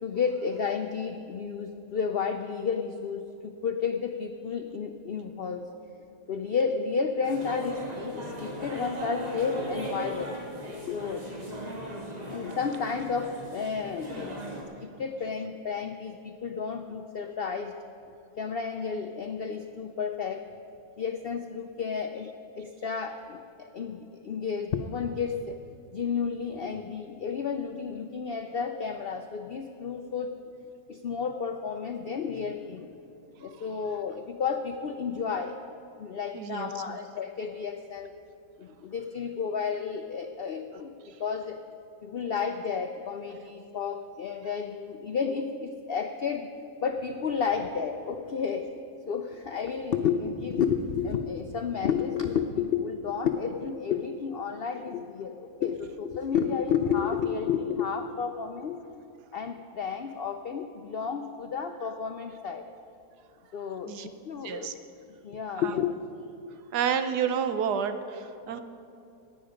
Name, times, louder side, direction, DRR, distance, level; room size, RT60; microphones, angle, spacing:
voice 1, 0.0-5.7 6.3-10.4 10.9-11.3 12.3-17.7 18.4-20.5 21.0-25.6 25.9-30.4 30.9-32.9 33.4-35.6 36.0-38.1 38.6-41.6 42.0-46.5 46.8-48.7 49.0-58.8 59.3-62.7 63.5-64.7 65.2-66.0, left 6 dB, 75° left, 6 dB, 0.5 m, -31 dB
sound 1, 7.2-14.6, right 1 dB, 25° right, 1.6 m, -38 dB
voice 2, 36.3-37.0 63.8-64.1 64.4-64.7 65.6-65.7 66.7-68.6, right 7 dB, 85° right, 9 dB, 1.3 m, -30 dB
15.5 x 9.8 x 5.1 m, 2.8 s
omnidirectional pair, 1.7 m